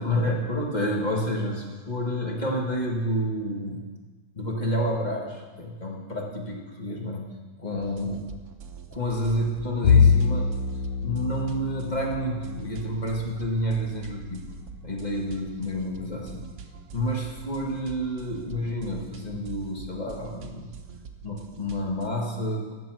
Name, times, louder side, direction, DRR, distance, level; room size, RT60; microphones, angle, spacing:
voice 1, 0.0-3.8 4.4-7.3 7.6-8.2 8.9-10.5 11.0-14.4 14.8-16.5 16.9-20.7 21.2-22.7, equal, 25° left, -1 dB, 1.7 m, -29 dB
sound 1, 7.8-22.1, right 6 dB, 55° right, 0.9 m, -44 dB
Bowed string instrument, 9.8-14.4, left 6 dB, 75° left, 1.3 m, -25 dB
14.0 x 7.4 x 6.3 m, 1.4 s
omnidirectional pair, 2.1 m